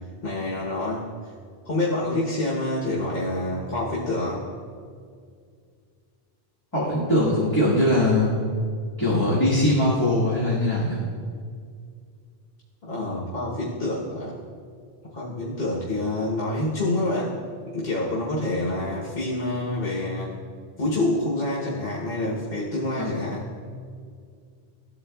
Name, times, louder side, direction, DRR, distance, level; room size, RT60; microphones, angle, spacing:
voice 1, 0.2-1.1 1.6-4.4 12.8-14.3 15.1-17.4 17.7-20.3 20.8-23.4, left 2 dB, 65° left, -6 dB, 1.2 m, -27 dB
voice 2, 6.7-8.4 9.0-11.0 23.0-23.1, left 1 dB, 20° left, -9 dB, 1.3 m, -21 dB
12.5 x 4.6 x 2.2 m, 2.2 s
omnidirectional pair, 1.0 m